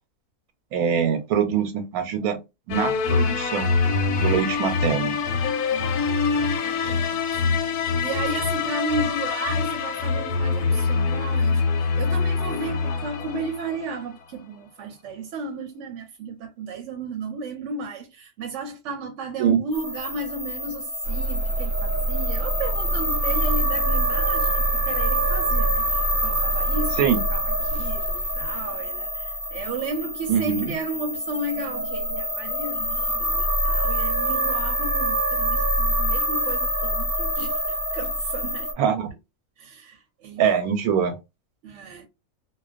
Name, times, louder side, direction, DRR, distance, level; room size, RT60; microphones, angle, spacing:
voice 1, 0.7-2.4 2.7-3.7 4.2-5.2 6.8-6.9 19.4-19.6 27.0-27.2 30.3-30.7 38.8-39.1 40.4-41.2, right 8 dB, 90° right, 1.1 m, -23 dB
sound 1, 2.7-14.0, left 4 dB, 90° left, 1.1 m, -24 dB
voice 2, 5.7-6.1 6.4-38.7 39.6-40.4 41.6-42.1, right 3 dB, 65° right, 0.8 m, -34 dB
sound 2, 19.7-38.7, equal, 20° left, 0.8 m, -26 dB
Bus / Engine starting, 21.0-28.8, right 2 dB, 65° left, 1.0 m, -28 dB
2.4 x 2.1 x 2.4 m
omnidirectional pair, 1.5 m